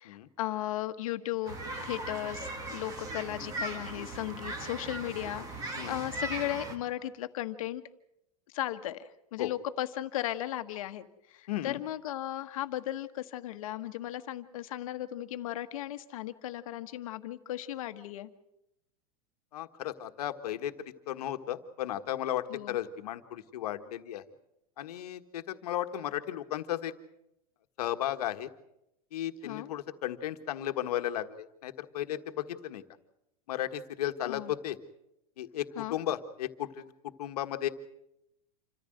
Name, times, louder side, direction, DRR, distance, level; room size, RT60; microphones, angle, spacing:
voice 1, 0.0-7.8 8.5-18.3 22.5-22.8 29.4-29.7 34.2-34.5 35.8-36.0, left 13 dB, 60° left, 9 dB, 1.3 m, -36 dB
sound 1, 1.5-6.8, right 2 dB, 15° right, 1.6 m, -39 dB
voice 2, 11.5-11.8 19.5-20.7 21.1-24.2 24.8-26.9 27.8-28.5 29.1-32.8 33.5-34.8 35.4-36.9 37.2-37.7, left 12 dB, 80° left, 7 dB, 1.5 m, -35 dB
27.5 x 14.5 x 7.8 m, 0.84 s
supercardioid pair, 175°, 20 cm